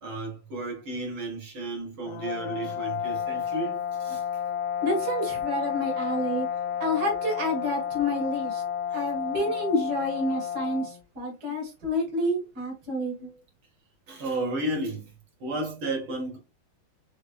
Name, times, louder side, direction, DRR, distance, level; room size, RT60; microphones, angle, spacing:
voice 1, 0.0-4.2 13.2-13.4 14.1-15.1 15.4-16.4, right 2 dB, 90° right, 2.8 m, -33 dB
sound 1, 2.1-11.0, left 8 dB, 90° left, 1.5 m, -31 dB
voice 2, 4.8-6.5 6.8-8.6 8.9-13.2, left 1 dB, 50° right, 2.5 m, -29 dB
5.7 x 3.4 x 2.4 m
omnidirectional pair, 2.2 m